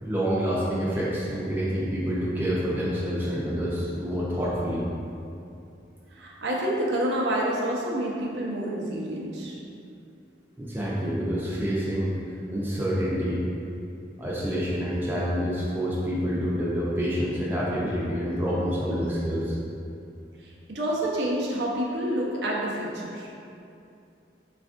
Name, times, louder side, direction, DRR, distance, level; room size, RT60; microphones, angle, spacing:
voice 1, 0.0-4.8 10.6-12.1 12.5-13.4 14.2-19.6, equal, 10° right, -7 dB, 0.4 m, -27 dB
voice 2, 6.1-9.6 20.4-23.3, right 1 dB, 80° right, -3 dB, 0.6 m, -28 dB
4.3 x 2.4 x 2.4 m, 2.6 s
head